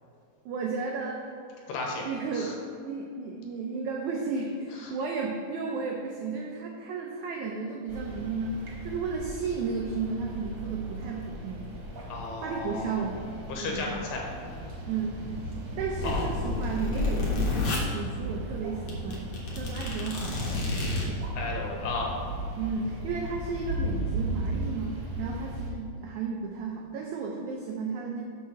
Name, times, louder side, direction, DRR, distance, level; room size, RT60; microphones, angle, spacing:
voice 1, 0.4-1.2 1.6-1.7 2.0-2.6 2.8-11.8 12.4-14.0 14.9-15.2 15.8-20.5 22.6-28.2, right 4 dB, 85° right, 0 dB, 1.7 m, -33 dB
voice 2, 1.7-2.0 2.3-2.5 4.8-4.9 12.1-13.0 13.5-14.2 16.0-16.3 21.4-22.1, left 3 dB, 75° left, -1 dB, 2.6 m, -34 dB
sound 1, 7.9-25.7, right 1 dB, 55° right, 1.8 m, -36 dB
sound 2, 15.6-17.8 18.5-18.6 18.9-21.1, left 3 dB, 55° left, 1.6 m, -30 dB
6.4 x 4.6 x 6.3 m, 2.5 s
omnidirectional pair, 4.2 m